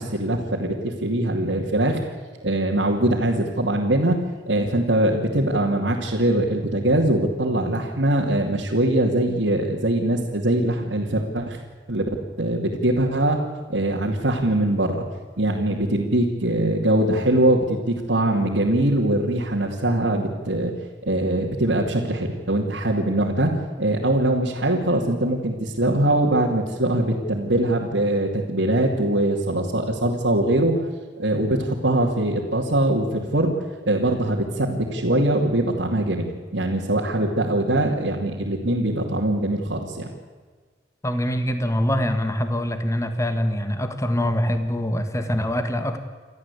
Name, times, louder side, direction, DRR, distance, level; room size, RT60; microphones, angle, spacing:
voice 1, 0.0-2.0 2.4-4.2 4.5-11.6 11.9-12.1 12.4-13.4 13.7-15.0 15.4-20.7 21.0-23.5 23.8-30.7 31.2-33.5 33.8-36.3 36.5-40.1, right 1 dB, 75° right, -4 dB, 2.6 m, -22 dB
voice 2, 41.0-46.0, equal, 15° left, 8 dB, 1.6 m, -24 dB
28.5 x 13.5 x 8.5 m, 1.5 s
head